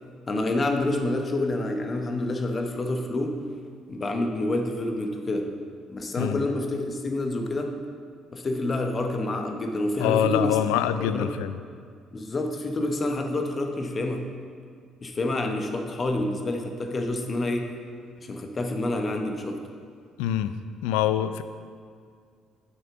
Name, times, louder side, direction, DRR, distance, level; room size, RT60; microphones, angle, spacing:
voice 1, 0.3-3.5 3.9-5.6 5.9-7.8 8.3-10.6 11.0-11.4 12.1-14.3 15.0-17.7 18.2-19.6, left 2 dB, 35° left, 4 dB, 1.1 m, -28 dB
voice 2, 10.0-11.6 20.2-20.5 20.8-21.4, left 11 dB, 75° left, 12 dB, 0.4 m, -24 dB
7.3 x 6.7 x 5.9 m, 2.1 s
hypercardioid pair, 50°, 0 cm